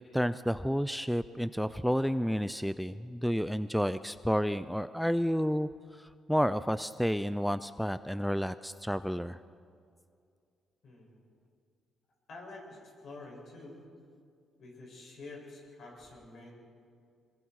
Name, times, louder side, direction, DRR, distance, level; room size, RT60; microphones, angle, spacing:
voice 1, 0.1-9.4, equal, ahead, 13 dB, 0.5 m, -31 dB
voice 2, 10.8-11.2 12.3-13.8 14.6-16.5, left 2 dB, 60° left, -1 dB, 7.3 m, -48 dB
25.5 x 22.0 x 4.8 m, 2.3 s
cardioid pair, 90°, 0 cm